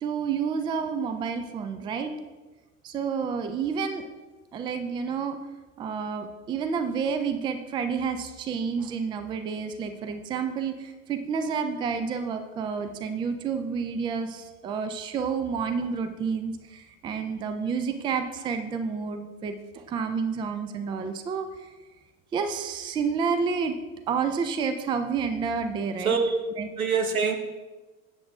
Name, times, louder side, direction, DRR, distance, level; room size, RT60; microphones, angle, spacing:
voice 1, 0.0-2.1 2.8-4.0 4.5-5.4 5.8-21.7 22.3-23.8 24.1-26.2 26.6-26.7, right 6 dB, 10° right, 8 dB, 0.4 m, -29 dB
voice 2, 26.0-26.4 26.8-27.4, right 5 dB, 80° right, 5 dB, 1.1 m, -24 dB
7.7 x 7.4 x 3.7 m, 1.2 s
figure-of-eight pair, 80°, 42 cm